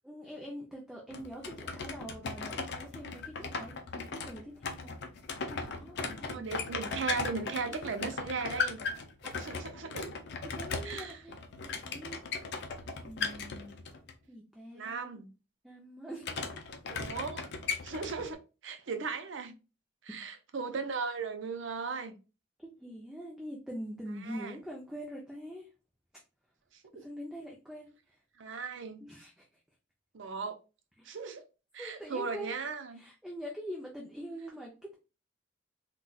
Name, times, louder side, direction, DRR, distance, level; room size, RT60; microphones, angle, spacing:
voice 1, 0.0-4.9 5.5-6.7 7.7-8.1 9.2-9.4 10.6-12.2 13.0-13.9 14.3-15.2 15.6-16.4 22.6-25.7 26.9-28.2 29.0-29.5 31.0-31.2 31.8-34.9, equal, 5° right, 0.5 m, -44 dB
sound 1, 1.1-14.1 16.2-18.3, left 4 dB, 60° left, 0.5 m, -38 dB
voice 2, 6.3-8.8 9.3-10.1 10.8-11.2 14.7-15.3 16.9-17.4 17.8-19.5 20.0-22.2 24.2-24.5 26.7-27.0 28.4-29.0 30.1-30.6 31.0-31.4 31.7-33.0, right 4 dB, 70° right, 0.5 m, -37 dB
3.9 x 2.3 x 2.3 m
head